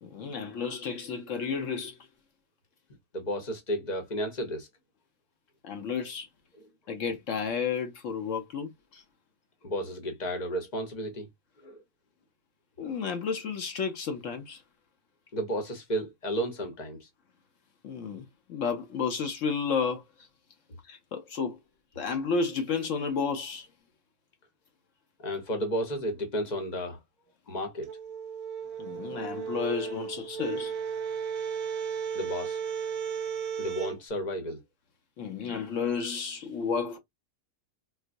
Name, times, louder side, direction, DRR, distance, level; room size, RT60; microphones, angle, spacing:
voice 1, 0.0-2.0 5.6-6.3 6.9-9.0 12.8-14.6 17.8-20.0 20.9-21.6 22.0-23.7 28.8-30.8 35.2-37.0, left 5 dB, 65° left, 0.9 m, -32 dB
voice 2, 3.1-4.7 6.6-6.7 9.6-11.3 11.6-11.8 15.3-17.1 25.2-27.0 27.5-27.9 32.1-32.6 33.6-34.6, equal, 35° left, 0.9 m, -32 dB
sound 1, 27.8-34.0, right 7 dB, 75° right, 1.1 m, -34 dB
4.3 x 2.0 x 2.5 m
omnidirectional pair, 1.6 m